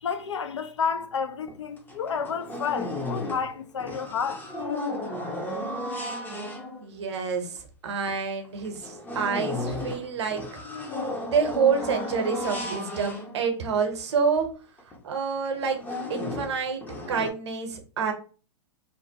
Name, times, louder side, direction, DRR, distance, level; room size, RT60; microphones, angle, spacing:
voice 1, 0.0-4.4, left 6 dB, 85° left, 0.4 m, -30 dB
sound 1, 1.5-1.6 1.9-3.6 3.8-7.0 7.6-7.7 8.1-8.2 8.6-13.8 14.4-14.5 14.8-15.0 15.5-17.3, left 1 dB, 10° left, 0.5 m, -34 dB
voice 2, 6.8-10.6 11.2-14.5 15.0-15.8 16.1-18.1, right 6 dB, 70° right, 0.7 m, -28 dB
2.5 x 2.1 x 2.7 m
hypercardioid pair, 110°, 15 cm